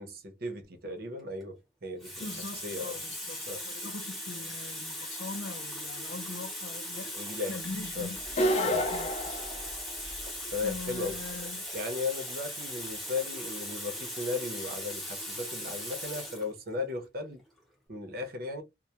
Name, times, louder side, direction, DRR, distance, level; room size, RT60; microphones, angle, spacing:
voice 1, 0.0-3.0 3.5-3.7 7.1-7.5 8.0-8.1 8.6-8.8 10.5-11.2 11.7-17.4 17.9-18.6, left 3 dB, 55° right, 0.7 m, -36 dB
Water tap faucet, 1.2-1.4 2.0-16.5 17.4-17.6, left 1 dB, ahead, 0.8 m, -39 dB
voice 2, 2.2-7.1 7.5-9.4 10.6-11.7, left 3 dB, 80° left, 0.5 m, -42 dB
sound 1, 8.2-10.3, equal, 35° left, 0.5 m, -29 dB
2.2 x 2.1 x 2.8 m
head